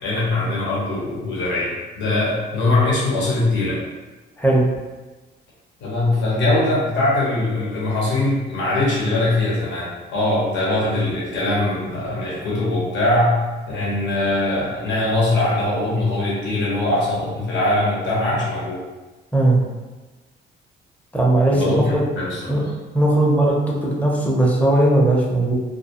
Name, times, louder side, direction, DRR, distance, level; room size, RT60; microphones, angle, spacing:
voice 1, 0.0-3.8 5.8-13.4 13.7-18.8 21.5-22.7, left 2 dB, 70° left, -6 dB, 0.9 m, -21 dB
voice 2, 21.1-22.0 22.5-22.6 22.9-25.5, right 1 dB, 5° left, -4 dB, 0.6 m, -18 dB
2.3 x 2.2 x 2.8 m, 1.2 s
cardioid pair, 90°, 20 cm